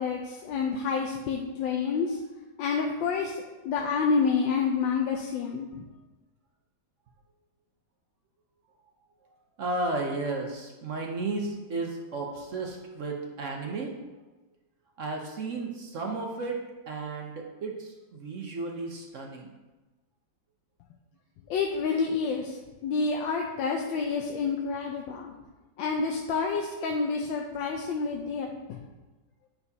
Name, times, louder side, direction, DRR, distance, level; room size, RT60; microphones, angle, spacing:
voice 1, 0.0-2.2 2.6-3.4 3.6-5.7 21.5-25.3 25.8-28.8, left 5 dB, 85° left, 1 dB, 1.4 m, -28 dB
voice 2, 9.6-14.0 15.0-19.5, right 3 dB, 55° right, 1 dB, 0.9 m, -33 dB
9.2 x 5.8 x 2.8 m, 1.2 s
omnidirectional pair, 2.0 m